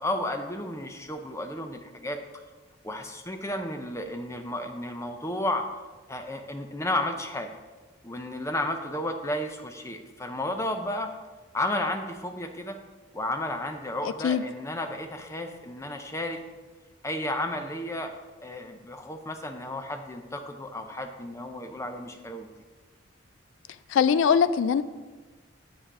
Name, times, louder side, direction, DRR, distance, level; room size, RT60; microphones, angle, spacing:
voice 1, 0.0-2.2 2.8-5.6 6.1-7.5 8.0-11.1 11.5-12.8 13.1-16.4 17.0-18.1 18.4-22.5, left 1 dB, 15° left, 5 dB, 0.6 m, -32 dB
voice 2, 23.9-24.8, left 7 dB, 75° left, 14 dB, 0.3 m, -21 dB
7.9 x 6.4 x 4.7 m, 1.3 s
head